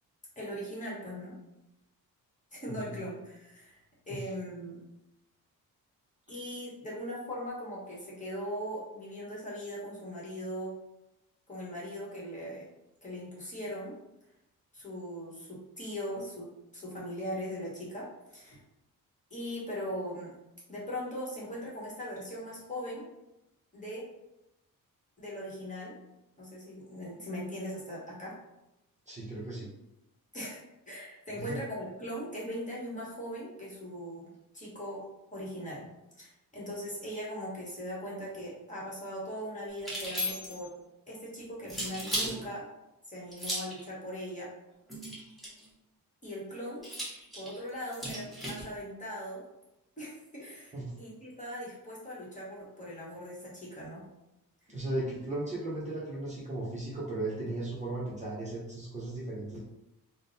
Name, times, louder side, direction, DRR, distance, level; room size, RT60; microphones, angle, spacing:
voice 1, 0.4-1.3 2.5-4.8 6.3-10.7 11.5-12.6 13.0-13.9 14.7-18.6 19.3-20.3 20.7-23.0 23.7-24.0 25.2-25.9 26.4-28.3 30.3-30.6 30.9-34.3 34.5-35.0 35.3-35.9 36.2-40.7 41.1-42.7 43.1-44.5 46.2-46.8 47.3-49.4 50.0-54.0, equal, 20° left, -5 dB, 1.1 m, -40 dB
voice 2, 2.7-3.0 4.1-4.3 29.1-29.7 31.4-31.6 50.7-50.9 54.7-59.6, right 2 dB, 20° right, -6 dB, 0.8 m, -36 dB
sound 1, 39.8-40.7 41.7-42.4 43.3-43.8 44.9-45.7 46.8-48.6, equal, ahead, 1.1 m, -35 dB
3.7 x 2.1 x 3.9 m, 0.93 s
wide cardioid pair, 150°, 35 cm